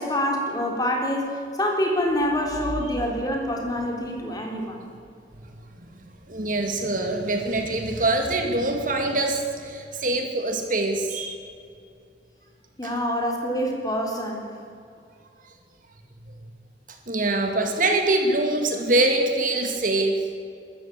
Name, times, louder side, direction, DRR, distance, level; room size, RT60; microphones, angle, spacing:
voice 1, 0.0-4.8 12.8-14.5, equal, 20° left, 0 dB, 3.7 m, -26 dB
voice 2, 6.3-11.4 12.8-12.9 17.1-20.3, right 2 dB, 50° right, 4 dB, 2.3 m, -24 dB
22.0 x 13.5 x 8.7 m, 2.4 s
head